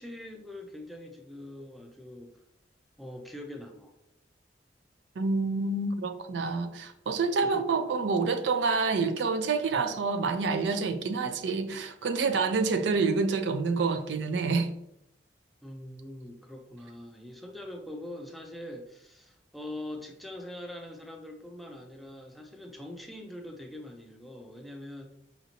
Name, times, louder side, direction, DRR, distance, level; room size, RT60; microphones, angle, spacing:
voice 1, 0.0-2.3 3.0-4.0 7.4-7.7 15.6-25.1, left 1 dB, ahead, 0.4 m, -43 dB
voice 2, 5.2-14.7, right 4 dB, 80° right, 0.4 m, -28 dB
5.0 x 2.6 x 2.8 m
head